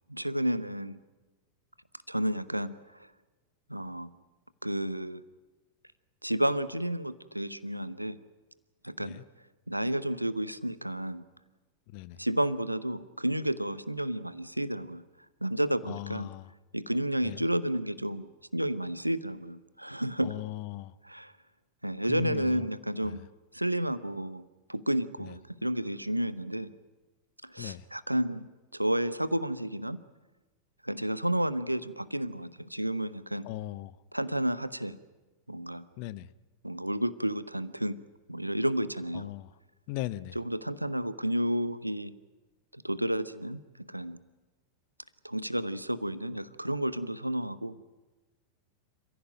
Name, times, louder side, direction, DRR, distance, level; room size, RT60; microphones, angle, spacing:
voice 1, 0.1-1.0 2.1-2.8 3.7-4.1 4.6-5.2 6.2-8.2 8.8-9.2 9.7-11.2 12.2-15.0 15.4-16.3 16.7-20.4 21.0-21.3 21.8-23.3 23.5-26.7 27.4-30.0 30.8-33.5 34.1-35.0 35.5-35.9 36.6-38.0 38.3-39.3 40.3-42.1 42.7-43.6 43.9-44.2 45.2-47.8, right 1 dB, 85° right, 0.9 m, -31 dB
voice 2, 11.9-12.2 15.9-16.5 17.2-17.4 20.2-20.9 22.1-22.6 23.0-23.2 25.2-25.3 27.6-27.8 33.4-34.0 36.0-36.3 39.1-39.5 39.9-40.4, left 16 dB, 45° left, 0.8 m, -38 dB
28.0 x 15.5 x 9.2 m
figure-of-eight pair, 90°, 0 cm